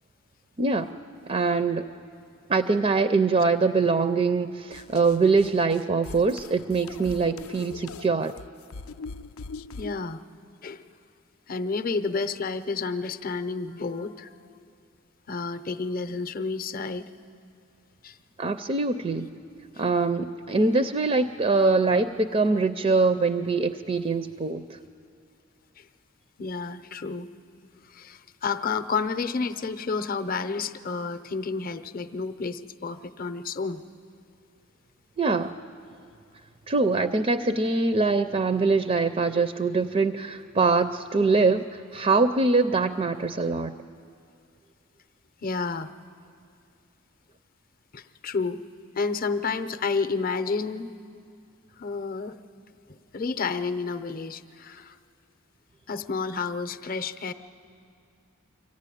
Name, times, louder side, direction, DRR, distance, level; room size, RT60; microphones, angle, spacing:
voice 1, 0.6-0.9 1.3-1.8 2.5-8.3 18.4-19.3 19.8-24.8 35.2-35.5 36.7-43.7, right 3 dB, 30° right, 10 dB, 0.4 m, -23 dB
sound 1, 4.7-10.0, left 4 dB, 85° left, 0.4 m, -41 dB
voice 2, 9.8-10.2 10.6-10.8 11.5-14.6 15.3-17.1 18.0-18.2 19.7-19.8 25.8-25.9 26.4-27.3 27.9-33.8 45.4-45.9 47.9-48.6 49.0-50.9 51.8-52.4 52.9-55.0 55.9-57.3, left 4 dB, 40° left, 10 dB, 0.6 m, -30 dB
24.5 x 15.0 x 9.9 m, 2.5 s
head